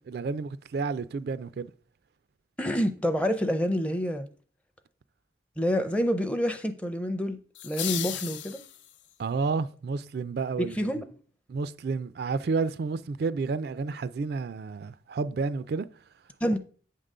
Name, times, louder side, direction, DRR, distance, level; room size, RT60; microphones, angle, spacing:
voice 1, 0.1-1.7 9.2-10.9 11.5-15.9, right 4 dB, 55° right, 0.3 m, -30 dB
voice 2, 2.6-4.3 5.6-7.4 7.6-8.6 10.6-11.0 16.4-16.6, equal, 5° left, 0.5 m, -27 dB
sound 1, 7.5-9.1, left 11 dB, 80° left, 0.6 m, -35 dB
8.6 x 3.7 x 6.6 m
head